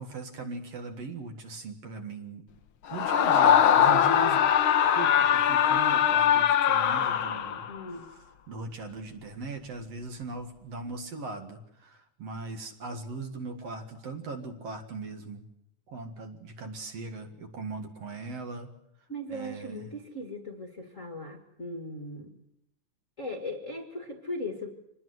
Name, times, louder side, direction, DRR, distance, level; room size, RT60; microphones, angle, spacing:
voice 1, 0.0-2.5 2.9-4.5 5.0-7.7 8.1-15.4 15.9-18.7 19.3-19.9, right 3 dB, 55° right, 5 dB, 2.6 m, -39 dB
Screaming, 2.9-7.8, left 9 dB, 80° left, 1.1 m, -22 dB
voice 2, 7.7-8.1 19.1-22.3 23.2-24.7, left 1 dB, 30° left, 5 dB, 1.6 m, -38 dB
25.5 x 19.5 x 7.9 m, 0.81 s
omnidirectional pair, 3.9 m